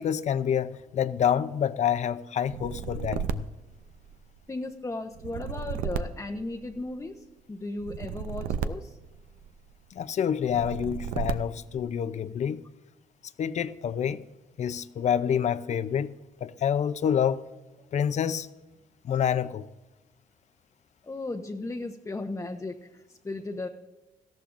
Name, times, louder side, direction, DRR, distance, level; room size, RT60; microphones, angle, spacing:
voice 1, 0.0-3.4 9.9-12.7 13.4-14.2 14.6-16.1 16.4-17.5 17.9-18.5 19.0-19.7, left 8 dB, 55° left, 0.6 m, -27 dB
sound 1, 2.5-4.4 5.1-7.1 7.8-9.7 10.5-11.8, right 7 dB, 90° right, 0.6 m, -34 dB
voice 2, 4.5-9.0 21.0-23.7, left 2 dB, 20° left, 0.9 m, -36 dB
18.0 x 13.5 x 2.6 m
cardioid pair, 85°, 14 cm